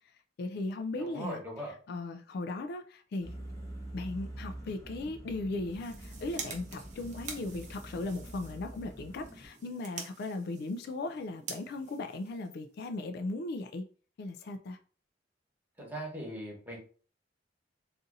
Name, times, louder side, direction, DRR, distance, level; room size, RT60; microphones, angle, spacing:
voice 1, 0.4-1.4 1.9-3.3 3.9-13.9 14.2-14.8, left 2 dB, 60° left, 0.3 m, -37 dB
voice 2, 0.9-1.8 15.8-16.8, right 1 dB, 10° right, 1.1 m, -40 dB
sound 1, 3.2-9.5, right 1 dB, 15° left, 0.7 m, -45 dB
sound 2, 5.6-12.9, right 5 dB, 40° right, 0.7 m, -47 dB
2.7 x 2.5 x 3.8 m
head